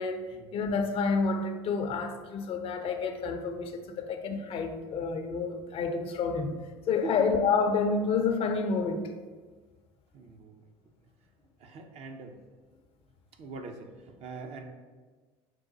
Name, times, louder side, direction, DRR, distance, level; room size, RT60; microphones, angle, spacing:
voice 1, 0.5-6.6 6.9-9.1, left 4 dB, 45° left, 7 dB, 0.5 m, -29 dB
voice 2, 10.1-10.7 11.6-12.4 13.4-14.6, right 4 dB, 55° right, 4 dB, 0.6 m, -42 dB
6.2 x 2.2 x 3.8 m, 1.4 s
hypercardioid pair, 75°, 13 cm